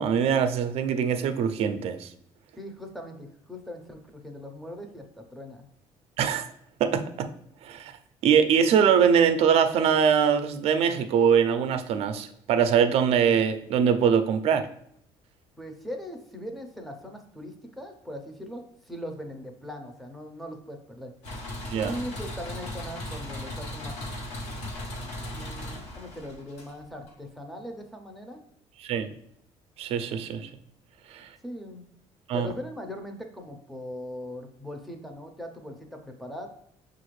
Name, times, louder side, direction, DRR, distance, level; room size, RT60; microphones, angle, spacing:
voice 1, 0.0-2.1 6.2-6.5 6.8-7.3 7.6-7.9 8.2-14.7 21.7-21.9 28.8-29.1 29.8-30.5 31.1-31.3 32.3-32.5, right 7 dB, 65° right, 9 dB, 0.5 m, -23 dB
voice 2, 2.6-5.7 15.6-21.1 21.7-24.0 25.2-28.4 31.4-31.9 32.3-36.5, equal, ahead, 4 dB, 0.6 m, -40 dB
sound 1, 21.2-27.1, left 1 dB, 85° left, 1.1 m, -37 dB
6.4 x 2.5 x 3.1 m, 0.70 s
cardioid pair, 160°, 11 cm